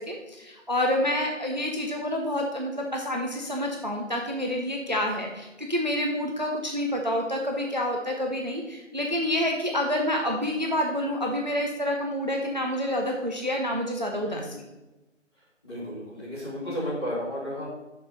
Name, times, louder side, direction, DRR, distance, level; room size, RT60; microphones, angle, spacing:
voice 1, 0.0-14.6, left 1 dB, 35° right, 1 dB, 0.7 m, -28 dB
voice 2, 14.2-14.6 15.6-17.7, equal, 20° left, -11 dB, 3.0 m, -33 dB
6.4 x 6.2 x 5.4 m, 1.1 s
figure-of-eight pair, 175°, 38 cm